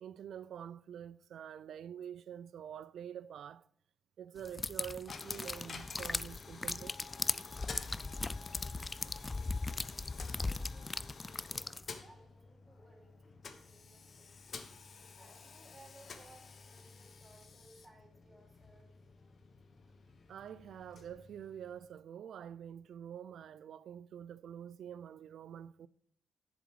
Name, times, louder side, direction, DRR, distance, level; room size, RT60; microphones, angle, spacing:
voice 1, 0.0-3.7 4.2-7.0 20.3-25.9, right 9 dB, 75° right, 0.3 m, -47 dB
sound 1, 4.4-11.9, left 3 dB, 35° left, 0.3 m, -38 dB
Coin (dropping), 5.1-22.0, left 5 dB, 60° left, 1.0 m, -52 dB
voice 2, 8.6-9.7 10.1-14.4 15.2-19.0, right 1 dB, 20° right, 4.2 m, -62 dB
7.2 x 7.2 x 4.7 m
supercardioid pair, 45°, 0 cm